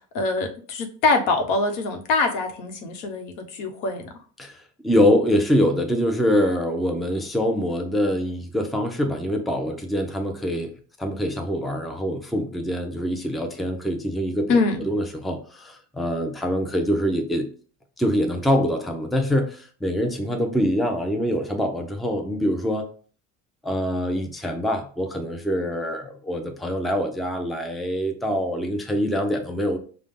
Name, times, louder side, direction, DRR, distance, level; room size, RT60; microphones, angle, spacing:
voice 1, 0.1-4.1 14.5-14.8, left 3 dB, 85° left, 5 dB, 1.0 m, -24 dB
voice 2, 4.4-10.7 11.0-17.5 18.0-22.9 23.6-29.8, equal, ahead, 3 dB, 0.5 m, -24 dB
5.1 x 2.2 x 3.6 m, 0.42 s
cardioid pair, 120°, 37 cm